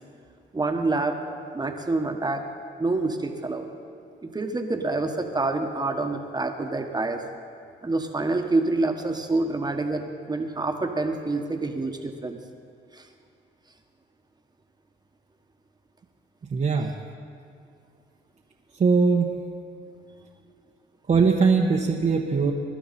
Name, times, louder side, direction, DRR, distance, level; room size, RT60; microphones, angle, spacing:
voice 1, 0.5-2.4 2.8-3.7 4.3-7.2 7.8-10.0 10.3-12.4, right 2 dB, 20° right, 4 dB, 1.4 m, -27 dB
voice 2, 16.5-16.9 18.7-19.3 21.1-22.5, right 5 dB, 40° right, -1 dB, 1.1 m, -20 dB
21.0 x 11.5 x 4.3 m, 2.3 s
cardioid pair, 90°, 20 cm